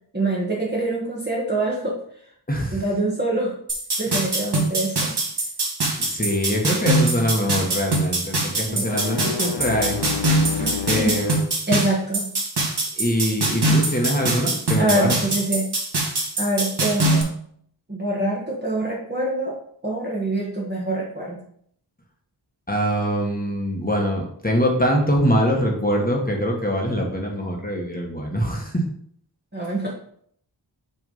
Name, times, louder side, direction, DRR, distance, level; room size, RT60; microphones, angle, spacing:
voice 1, 0.1-2.0 2.7-3.5 4.0-5.1 8.7-9.2 10.6-11.2 11.7-12.3 13.7-13.8 14.8-15.7 16.4-17.3 17.9-19.5 19.8-21.4 29.5-29.9, right 2 dB, 25° right, -5 dB, 1.5 m, -25 dB
voice 2, 2.5-2.8 6.0-10.0 10.8-11.4 13.0-15.1 22.7-28.8, equal, 20° left, -1 dB, 1.3 m, -23 dB
sound 1, 3.7-17.2, right 2 dB, 60° right, 1.7 m, -23 dB
sound 2, 8.7-11.5, left 7 dB, 65° left, 0.5 m, -30 dB
6.1 x 3.5 x 5.4 m, 0.64 s
wide cardioid pair, 80°, 45 cm